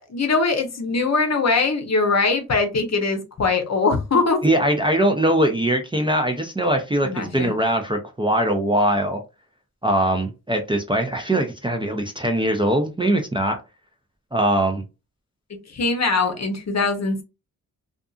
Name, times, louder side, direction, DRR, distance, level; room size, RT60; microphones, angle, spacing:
voice 1, 0.0-4.4 7.0-7.5 15.7-17.2, left 3 dB, 45° left, 0.8 m, -22 dB
voice 2, 4.4-9.2 9.8-13.6 14.3-14.8, right 1 dB, 15° right, 0.5 m, -21 dB
2.6 x 2.4 x 2.3 m
cardioid pair, 65°, 36 cm